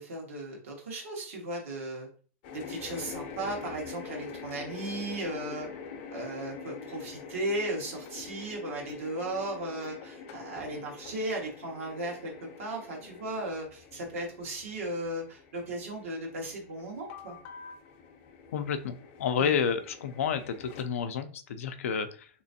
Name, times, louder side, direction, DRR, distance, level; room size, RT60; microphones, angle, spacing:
voice 1, 0.0-2.1 2.5-5.7 6.1-17.4 19.4-19.5, right 1 dB, 85° right, 0 dB, 1.4 m, -36 dB
sound 1, 2.4-20.8, left 5 dB, 50° left, 0.6 m, -45 dB
voice 2, 18.5-22.3, left 7 dB, 85° left, 9 dB, 0.4 m, -30 dB
3.4 x 3.0 x 2.7 m, 0.39 s
supercardioid pair, 140°, 7 cm